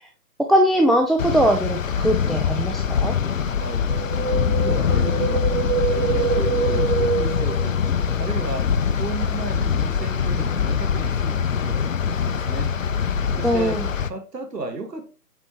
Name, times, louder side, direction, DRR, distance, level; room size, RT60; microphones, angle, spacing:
voice 1, 0.4-3.1 13.4-13.9, equal, ahead, 1 dB, 0.3 m, -20 dB
sound 1, 1.2-14.1, left 7 dB, 55° left, 0.5 m, -23 dB
voice 2, 3.6-3.9 4.2-5.5 5.8-7.8 8.2-12.8 13.3-15.1, right 4 dB, 80° right, 4 dB, 1.7 m, -34 dB
Wind, 3.9-8.2 8.5-8.6, right 6 dB, 30° right, 0.7 m, -26 dB
8.1 x 4.3 x 2.9 m, 0.33 s
figure-of-eight pair, 160°, 48 cm